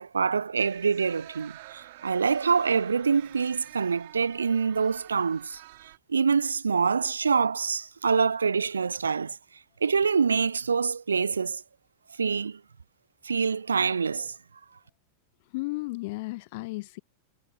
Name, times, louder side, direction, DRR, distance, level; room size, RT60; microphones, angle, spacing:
voice 1, 0.0-5.6 6.1-9.4 9.8-11.6 12.2-12.6 13.2-14.3, right 5 dB, 75° right, 0.8 m, -25 dB
sound 1, 0.6-6.0, right 19 dB, 50° right, 5.1 m, -48 dB
voice 2, 15.5-17.0, left 23 dB, 50° left, 0.5 m, -34 dB
figure-of-eight pair, 90°, 0 cm